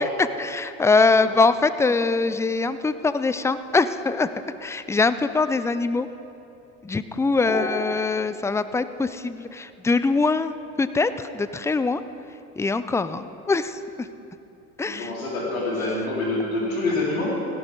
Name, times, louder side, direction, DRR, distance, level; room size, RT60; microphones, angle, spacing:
voice 1, 0.0-4.3 4.6-6.1 6.8-12.0 12.3-14.1 14.8-15.1, left 3 dB, 5° left, 13 dB, 0.4 m, -23 dB
voice 2, 14.9-17.3, left 2 dB, 85° left, -4 dB, 3.8 m, -26 dB
17.0 x 14.0 x 3.8 m, 2.7 s
hypercardioid pair, 80°, 40 cm